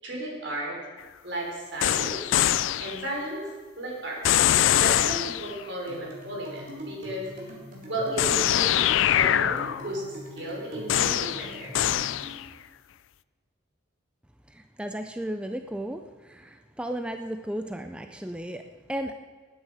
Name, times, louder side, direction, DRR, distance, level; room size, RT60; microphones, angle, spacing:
voice 1, 0.0-0.8 1.2-2.3 2.8-3.5 3.8-4.2 4.8-7.3 7.8-11.8, right 1 dB, 65° right, -2 dB, 4.3 m, -34 dB
sound 1, 1.8-3.1 4.2-5.6 8.2-10.0 10.9-12.5, left 11 dB, 75° left, 0.4 m, -23 dB
sound 2, 5.9-12.4, equal, 45° right, 3.4 m, -42 dB
voice 2, 14.5-18.6 18.9-19.1, right 1 dB, 5° right, 6 dB, 0.4 m, -34 dB
19.5 x 9.2 x 4.9 m, 1.5 s
head